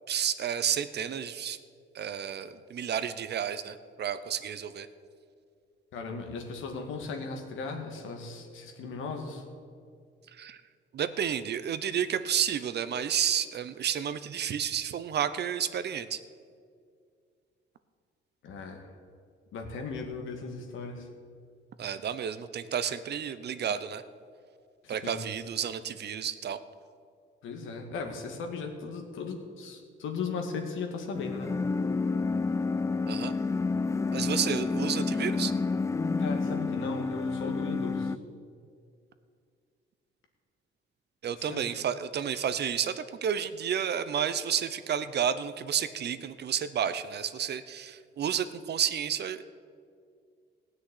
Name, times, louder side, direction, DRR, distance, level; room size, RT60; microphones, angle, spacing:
voice 1, 0.1-1.6 1.9-4.9 10.3-10.6 10.9-16.2 21.8-24.0 24.9-26.6 33.1-33.3 34.1-35.5 41.2-49.4, right 8 dB, 55° right, 12 dB, 0.8 m, -31 dB
voice 2, 5.9-9.4 18.4-18.9 19.5-21.1 24.8-25.2 27.4-31.5 36.2-38.1 41.4-41.6, left 4 dB, 80° left, 4 dB, 2.0 m, -37 dB
sound 1, 31.1-38.2, left 4 dB, 15° left, 0.3 m, -29 dB
16.0 x 6.4 x 9.8 m, 2.2 s
cardioid pair, 90°, 20 cm